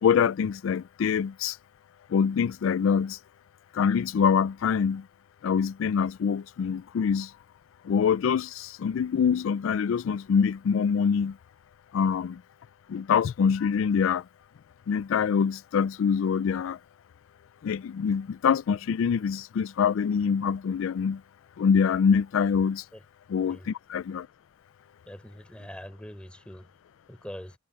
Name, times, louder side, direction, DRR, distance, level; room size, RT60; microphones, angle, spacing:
voice 1, 0.0-1.6 2.1-3.2 3.7-5.0 5.4-7.3 7.8-11.4 11.9-12.4 12.9-14.2 14.9-16.8 17.6-21.2 21.6-22.8 23.3-24.3, left 6 dB, 80° left, 0.3 m, -25 dB
voice 2, 25.1-26.7 27.1-27.6, equal, 5° left, 3.9 m, -43 dB
head